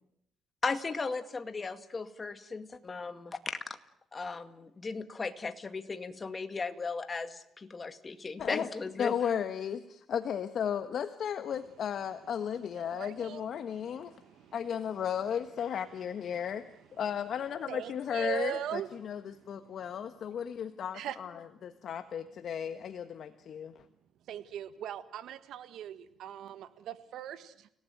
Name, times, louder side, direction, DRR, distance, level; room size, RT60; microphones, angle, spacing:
voice 1, 0.6-3.8 4.1-9.1, left 4 dB, 30° left, 9 dB, 2.2 m, -36 dB
voice 2, 9.0-14.1 14.5-16.6 16.9-23.8, left 8 dB, 65° left, 10 dB, 1.4 m, -35 dB
voice 3, 12.7-14.6 17.7-18.9 19.3-19.8 20.9-21.2 24.3-27.7, right 11 dB, 80° right, 12 dB, 1.5 m, -40 dB
30.0 x 18.5 x 9.4 m, 0.76 s
cardioid pair, 90°, 0 cm